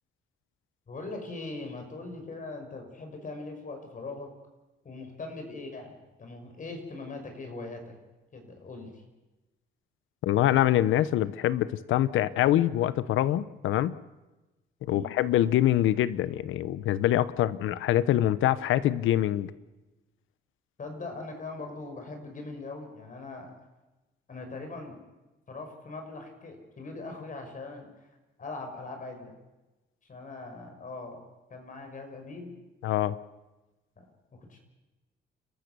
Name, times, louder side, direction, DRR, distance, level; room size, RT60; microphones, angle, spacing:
voice 1, 0.9-4.3 4.8-7.9 8.3-9.0 14.9-15.1 20.8-23.5 24.3-25.0 25.5-27.9 28.4-29.3 30.1-31.2 31.5-32.5 34.0-34.6, left 3 dB, 40° left, 4 dB, 6.1 m, -41 dB
voice 2, 10.2-14.0 14.8-19.5 32.8-33.2, left 13 dB, 85° left, 16 dB, 1.0 m, -25 dB
30.0 x 14.0 x 7.0 m, 1.1 s
cardioid pair, 90°, 20 cm